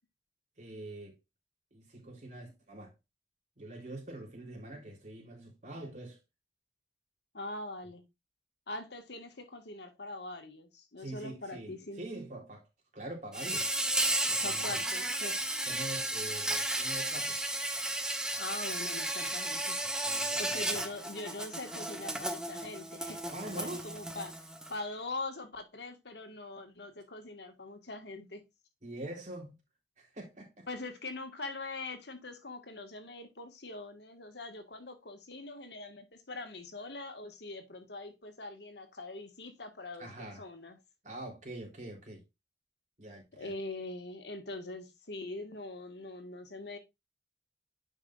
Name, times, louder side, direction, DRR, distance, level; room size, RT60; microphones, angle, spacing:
voice 1, 0.6-1.2 1.7-2.9 3.6-6.2 11.0-12.6 12.9-13.7 14.2-14.8 15.7-17.4 20.0-20.8 23.3-23.9 28.8-29.6 30.0-30.7 40.0-40.4 41.0-42.2 43.0-43.5, right 2 dB, 45° right, 3.6 m, -44 dB
voice 2, 7.3-8.0 8.7-12.0 14.4-15.8 18.4-19.8 20.4-23.2 23.6-28.4 30.7-40.1 40.4-40.8 43.4-46.8, left 2 dB, 70° left, 1.7 m, -42 dB
Insect, 13.3-24.7, right 1 dB, 5° right, 1.0 m, -34 dB
10.5 x 5.4 x 2.5 m
head